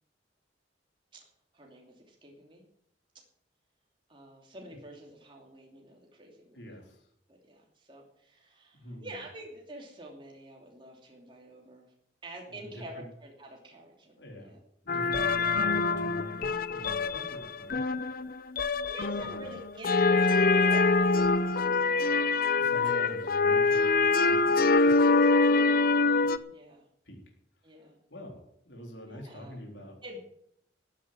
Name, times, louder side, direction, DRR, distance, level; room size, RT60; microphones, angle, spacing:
voice 1, 1.5-2.6 4.1-6.6 7.3-11.9 12.2-14.6 15.1-15.2 18.6-22.3 22.8-23.0 23.4-23.8 25.0-26.9 27.6-28.0 29.1-29.6 30.0-30.2, right 1 dB, 30° right, 0 dB, 2.9 m, -48 dB
voice 2, 6.5-7.1 8.7-9.2 12.5-13.1 14.2-14.5 14.8-17.8 19.1-19.6 22.5-24.8 26.2-26.4 27.0-27.2 28.1-30.0, equal, 75° left, 1 dB, 3.9 m, -45 dB
sound 1, 14.9-26.4, left 3 dB, 55° left, 0.7 m, -25 dB
14.5 x 8.8 x 7.6 m, 0.71 s
head